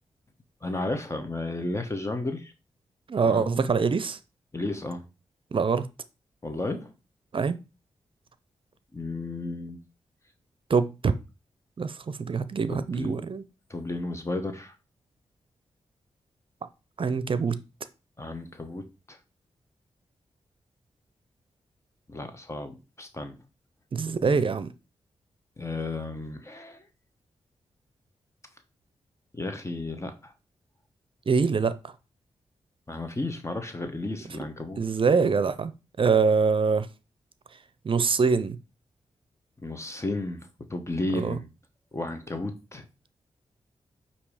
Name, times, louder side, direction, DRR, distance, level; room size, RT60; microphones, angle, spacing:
voice 1, 0.6-2.5 3.2-3.7 4.5-5.1 6.4-6.9 8.9-9.8 12.7-13.1 13.7-14.8 18.2-19.2 22.1-23.4 24.1-24.4 25.6-26.8 29.3-30.3 32.9-34.8 39.6-41.5 41.9-42.9, left 2 dB, 25° left, 1.1 m, -33 dB
voice 2, 3.1-4.2 5.5-5.9 7.3-7.6 10.7-11.1 11.8-13.4 17.0-17.6 23.9-24.7 31.3-31.9 34.8-35.7 36.0-36.9 37.8-38.6 41.1-41.4, right 5 dB, 50° right, 0.6 m, -24 dB
8.4 x 2.9 x 4.9 m
cardioid pair, 55°, 11 cm